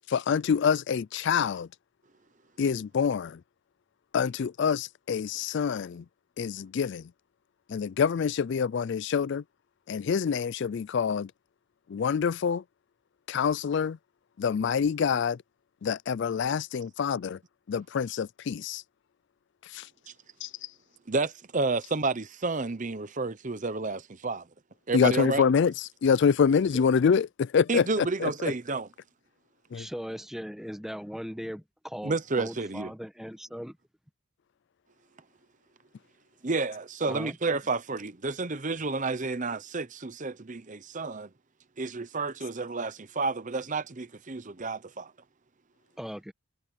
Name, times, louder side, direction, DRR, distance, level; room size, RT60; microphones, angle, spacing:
voice 1, 0.1-1.7 2.6-3.4 4.1-6.0 6.4-7.0 7.7-9.4 9.9-11.3 11.9-12.6 13.3-14.0 14.4-15.4 15.8-17.4 17.7-18.8 19.7-19.9 20.4-20.5 24.9-28.3 29.7-29.9, left 6 dB, 55° left, 0.3 m, -26 dB
voice 2, 21.1-24.4 24.9-25.4 27.7-28.9 32.0-32.9 36.4-41.3 41.8-45.1, right 3 dB, 35° right, 0.8 m, -30 dB
voice 3, 29.7-33.8 37.0-37.3 46.0-46.3, equal, ahead, 1.2 m, -39 dB
head